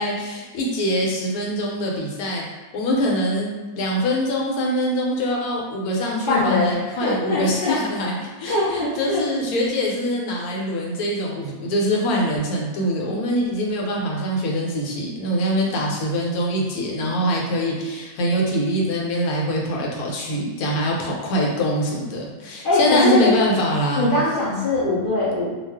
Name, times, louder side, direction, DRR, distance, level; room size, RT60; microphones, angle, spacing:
voice 1, 0.0-2.4 2.7-24.2, equal, 90° left, -2 dB, 1.1 m, -23 dB
voice 2, 6.3-6.7 7.0-7.8 8.5-9.2 22.6-23.3 24.0-25.5, left 2 dB, 70° left, -7 dB, 0.5 m, -21 dB
2.4 x 2.3 x 3.4 m, 1.2 s
omnidirectional pair, 1.5 m